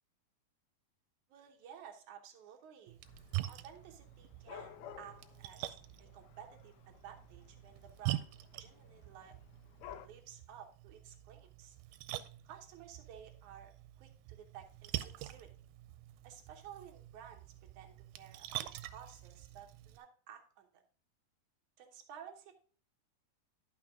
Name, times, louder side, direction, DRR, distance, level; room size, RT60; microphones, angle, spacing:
voice 1, 1.3-3.0 3.5-8.3 8.6-9.4 9.7-11.8 12.4-13.7 14.0-15.5 16.2-17.4 17.7-20.8 21.8-22.5, right 8 dB, 70° right, 4 dB, 2.0 m, -54 dB
Splash splatter, 2.9-20.0, right 15 dB, 85° right, 2.5 m, -45 dB
Dog / Cat, 3.0-10.1, left 10 dB, 85° left, 2.5 m, -55 dB
11.0 x 5.8 x 3.6 m, 0.43 s
omnidirectional pair, 4.3 m